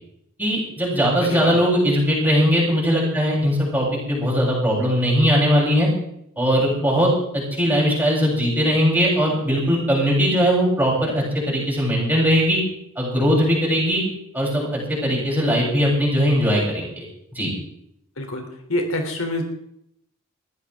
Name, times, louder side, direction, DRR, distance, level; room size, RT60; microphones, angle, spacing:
voice 1, 0.4-5.9 6.4-12.6 13.0-14.0 14.3-17.0 17.3-17.5, equal, 10° right, -5 dB, 7.7 m, -20 dB
voice 2, 1.2-1.6 18.2-19.4, left 1 dB, 75° left, 3 dB, 3.3 m, -26 dB
21.0 x 15.0 x 3.7 m, 0.74 s
head